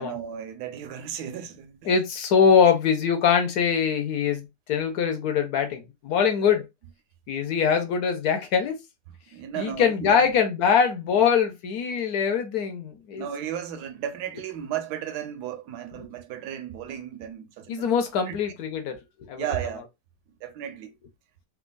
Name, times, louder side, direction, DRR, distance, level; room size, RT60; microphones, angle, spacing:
voice 1, 0.0-1.9 9.3-10.4 11.1-11.2 13.2-17.9 18.3-18.4 19.4-19.8 20.4-20.9, right 9 dB, 70° right, 1.1 m, -34 dB
voice 2, 1.9-6.6 7.3-8.8 9.6-13.3 17.7-19.0 19.3-19.5, left 7 dB, 65° left, 1.2 m, -23 dB
3.5 x 2.3 x 2.2 m
omnidirectional pair, 1.9 m